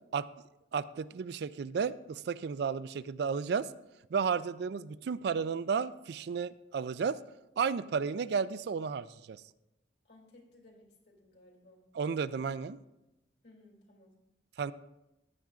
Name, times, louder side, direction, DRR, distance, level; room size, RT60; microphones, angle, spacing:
voice 1, 0.7-3.7 4.1-7.2 7.6-9.4 11.9-12.8 14.6-14.7, right 6 dB, 65° right, 15 dB, 0.3 m, -33 dB
voice 2, 10.0-11.8 13.4-14.1, left 2 dB, 70° left, 1 dB, 2.7 m, -59 dB
15.0 x 10.0 x 2.4 m, 0.93 s
head